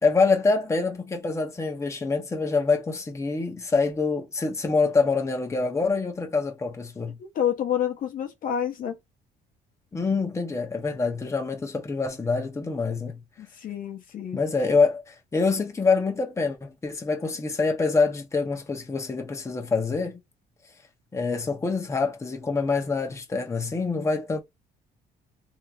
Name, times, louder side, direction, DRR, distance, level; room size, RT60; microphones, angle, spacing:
voice 1, 0.0-7.2 9.9-13.2 14.3-20.2 21.1-24.4, left 4 dB, 15° left, 0.8 m, -25 dB
voice 2, 7.2-9.0 13.4-14.4, left 9 dB, 55° left, 0.8 m, -28 dB
3.2 x 2.7 x 2.3 m
cardioid pair, 110°, 17 cm